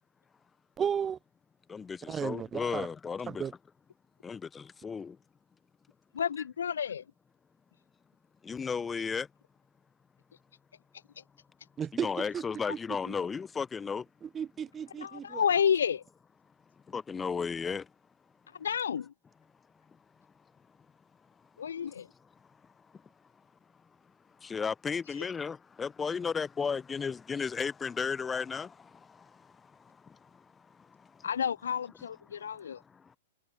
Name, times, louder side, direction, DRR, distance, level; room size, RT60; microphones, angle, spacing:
voice 1, 0.8-1.2 2.1-2.9 3.3-3.5 11.8-12.1 12.3-12.4 12.7-12.8 13.1-13.2 14.2-15.4, right 7 dB, 15° right, 0.4 m, -34 dB
voice 2, 1.7-3.4 4.2-5.2 8.4-9.3 12.0-14.1 16.9-17.9 21.8-21.9 22.9-23.0 24.4-31.3 32.4-32.5 32.9-33.2, left 5 dB, 15° left, 1.1 m, -35 dB
voice 3, 6.1-7.0 15.0-16.0 18.6-19.1 21.6-22.1 31.2-32.8, left 8 dB, 60° left, 0.4 m, -30 dB
figure-of-eight pair, 105°, 0 cm